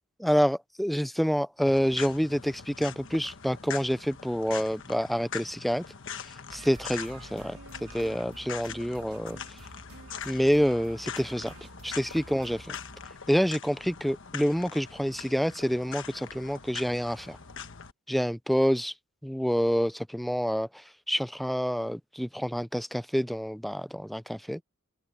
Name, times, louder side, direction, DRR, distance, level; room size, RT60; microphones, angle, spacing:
voice 1, 0.2-5.8 6.5-9.4 10.3-11.5 11.8-12.8 13.3-17.4 18.1-18.9 19.2-24.6, equal, ahead, 0.4 m, -27 dB
sound 1, 1.6-17.9, left 7 dB, 60° left, 1.3 m, -43 dB
sound 2, 6.5-13.1, right 2 dB, 90° right, 3.8 m, -49 dB
open air
head